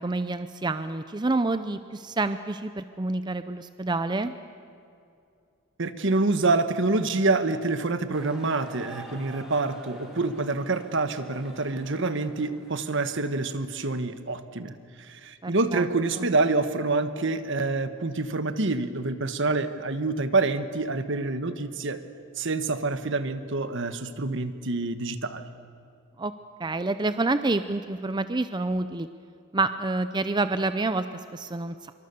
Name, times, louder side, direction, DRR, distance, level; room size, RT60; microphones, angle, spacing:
voice 1, 0.0-4.3 15.4-15.8 16.2-16.3 26.2-26.3 26.6-29.1 29.5-31.1 31.3-31.7, right 2 dB, 20° right, 11 dB, 0.6 m, -28 dB
voice 2, 5.8-22.0 22.4-25.4, right 3 dB, 60° right, 10 dB, 1.3 m, -27 dB
sound 1, 8.1-13.3, right 1 dB, ahead, 3.7 m, -47 dB
25.5 x 24.5 x 6.9 m, 2.5 s
head